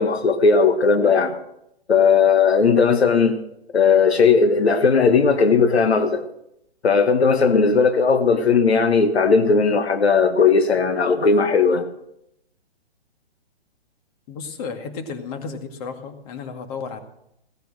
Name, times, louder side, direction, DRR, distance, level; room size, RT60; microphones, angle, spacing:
voice 1, 0.0-1.4 1.9-3.4 3.7-6.2 6.8-11.9, left 5 dB, 85° left, 1.4 m, -17 dB
voice 2, 14.3-17.0, left 5 dB, 35° left, 2.1 m, -33 dB
17.0 x 10.5 x 6.3 m
hypercardioid pair, 135°, 31 cm